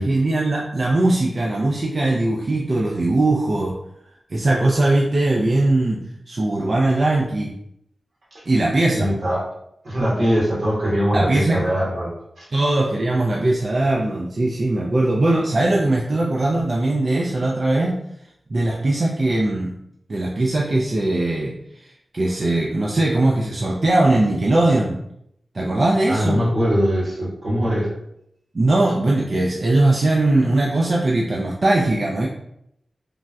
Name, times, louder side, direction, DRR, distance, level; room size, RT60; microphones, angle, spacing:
voice 1, 0.0-3.7 4.3-7.5 8.5-9.1 11.1-11.7 12.5-18.0 18.5-19.8 20.1-25.0 25.5-26.4 28.5-32.3, right 2 dB, 50° right, -3 dB, 0.3 m, -20 dB
voice 2, 8.9-9.4 9.8-12.1 12.4-12.5 26.1-27.9, equal, 80° right, -7 dB, 1.3 m, -21 dB
3.3 x 2.5 x 2.2 m, 0.75 s
wide cardioid pair, 90°, 0 cm